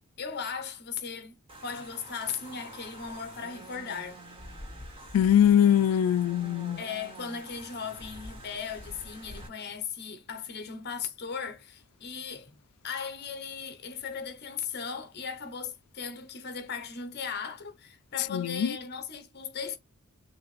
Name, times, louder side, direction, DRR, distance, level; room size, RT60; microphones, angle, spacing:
voice 1, 0.2-4.2 6.8-19.8, left 6 dB, 45° left, 0.9 m, -37 dB
sound 1, 1.5-9.5, right 1 dB, 25° right, 1.6 m, -46 dB
voice 2, 5.1-6.8 18.3-18.8, left 9 dB, 80° left, 0.3 m, -22 dB
6.1 x 2.6 x 3.2 m
head